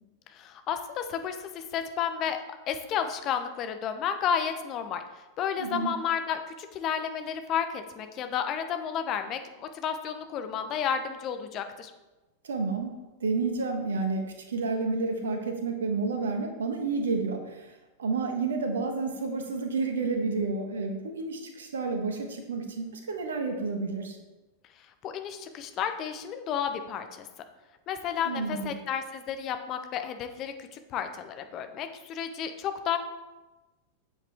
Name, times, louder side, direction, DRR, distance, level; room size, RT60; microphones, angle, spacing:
voice 1, 0.3-2.4 2.7-5.0 5.4-11.9 25.0-27.3 27.9-33.0, left 8 dB, 35° left, 8 dB, 0.9 m, -32 dB
voice 2, 5.6-5.9 12.4-17.7 18.0-24.2 28.2-28.8, right 4 dB, 65° right, 4 dB, 1.4 m, -30 dB
7.9 x 7.7 x 3.6 m, 1.1 s
figure-of-eight pair, 90°, 0 cm